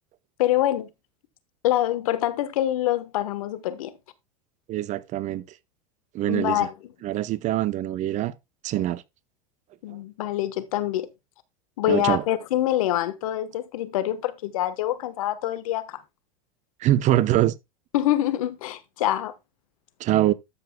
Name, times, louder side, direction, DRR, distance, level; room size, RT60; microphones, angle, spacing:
voice 1, 0.4-0.9 1.6-4.0 6.3-6.7 9.8-11.1 11.8-16.0 17.9-19.3, left 13 dB, 70° left, 1.2 m, -25 dB
voice 2, 4.7-5.4 6.1-6.7 7.0-8.3 8.6-9.0 11.9-12.2 16.8-17.5 20.0-20.3, right 13 dB, 40° right, 0.8 m, -23 dB
12.0 x 7.8 x 2.2 m
hypercardioid pair, 90°, 18 cm